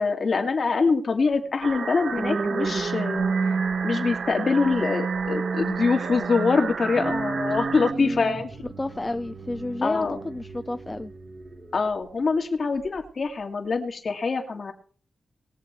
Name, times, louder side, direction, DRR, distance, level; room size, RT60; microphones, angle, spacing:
voice 1, 0.0-8.5 9.8-10.2 11.7-14.7, left 4 dB, 55° left, 2.2 m, -24 dB
sound 1, 1.6-7.9, right 5 dB, 70° right, 0.5 m, -33 dB
sound 2, 1.7-12.3 12.8-13.1, right 4 dB, 45° right, 1.5 m, -31 dB
voice 2, 7.9-8.4 8.8-11.1, left 2 dB, 20° left, 0.6 m, -31 dB
20.0 x 7.5 x 4.5 m
cardioid pair, 75°, 0 cm